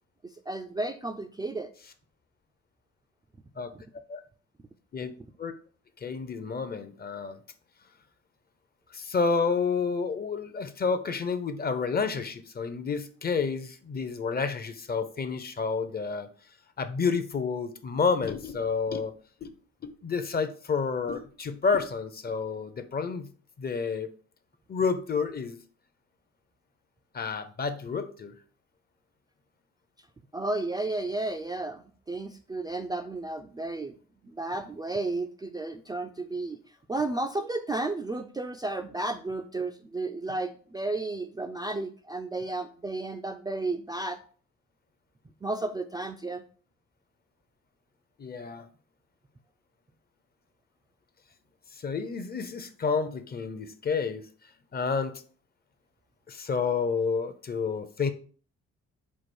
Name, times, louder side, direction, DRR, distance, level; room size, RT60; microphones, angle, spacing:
voice 1, 0.5-1.7 30.3-33.9 34.2-36.6 36.9-44.2 45.4-46.4, right 2 dB, 15° right, 4 dB, 0.3 m, -33 dB
voice 2, 6.0-7.4 8.9-16.3 16.8-19.1 19.4-19.5 19.8-23.3 23.6-24.1 24.7-25.6 27.1-28.3 48.2-48.7 51.8-54.2 54.7-55.2 56.3-58.1, left 5 dB, 30° left, 10 dB, 0.6 m, -30 dB
4.7 x 2.4 x 4.4 m, 0.42 s
cardioid pair, 90°, 30 cm